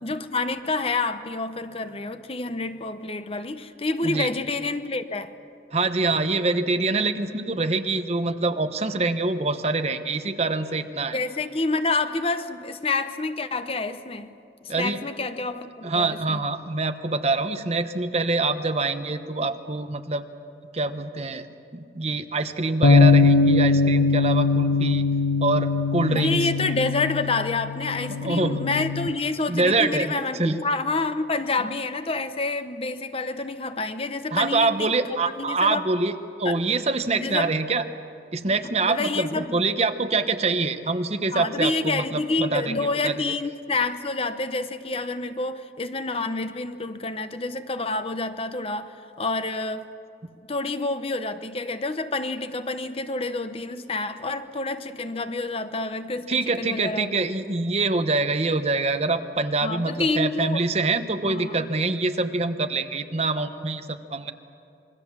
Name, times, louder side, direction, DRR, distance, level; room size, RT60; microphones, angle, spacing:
voice 1, 0.0-5.3 11.1-14.3 14.6-16.4 26.1-35.8 36.4-36.6 37.1-37.6 38.5-38.6 38.8-39.7 41.3-49.9 50.5-57.1 59.6-60.6 61.0-61.7, left 3 dB, 35° left, 0.8 m, -28 dB
voice 2, 5.7-11.2 14.7-15.0 15.8-20.2 20.7-21.5 21.7-25.0 25.4-26.5 28.1-28.6 29.5-30.1 30.4-30.6 34.3-37.8 38.3-42.7 43.0-43.1 56.3-64.3, right 3 dB, 35° right, 1.0 m, -25 dB
sound 1, 22.8-29.1, left 4 dB, 75° left, 1.2 m, -21 dB
26.5 x 22.0 x 7.3 m
head